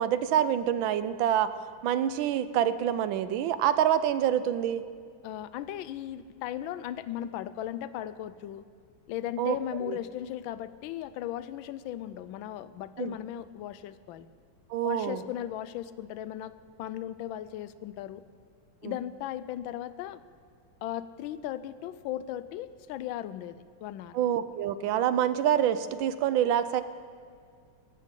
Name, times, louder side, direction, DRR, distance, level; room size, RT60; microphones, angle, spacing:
voice 1, 0.0-1.5 1.8-4.8 9.4-9.6 9.9-10.0 13.0-13.1 14.7-15.2 18.8-18.9 24.1-26.8, right 10 dB, 80° right, 13 dB, 1.4 m, -26 dB
voice 2, 5.2-8.6 9.1-14.3 14.8-18.2 18.8-20.2 20.8-24.1, left 12 dB, 80° left, 14 dB, 1.3 m, -37 dB
17.5 x 14.5 x 3.8 m, 2.1 s
omnidirectional pair, 2.2 m